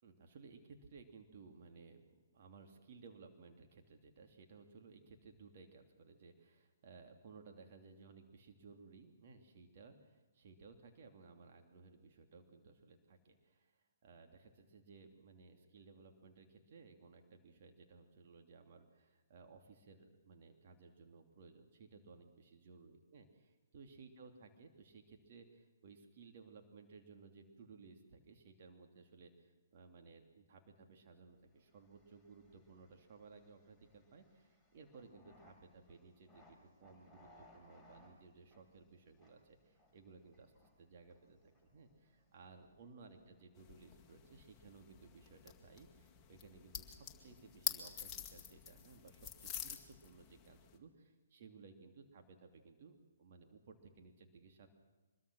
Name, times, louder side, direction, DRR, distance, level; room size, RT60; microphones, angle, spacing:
voice 1, 0.0-2.0 2.3-54.7, right 4 dB, 45° right, 4 dB, 2.8 m, -59 dB
sound 1, 31.5-45.3, left 1 dB, 5° right, 5.3 m, -68 dB
sound 2, 43.5-50.8, left 8 dB, 20° left, 2.0 m, -47 dB
24.5 x 21.5 x 6.3 m, 1.2 s
figure-of-eight pair, 130°, 0 cm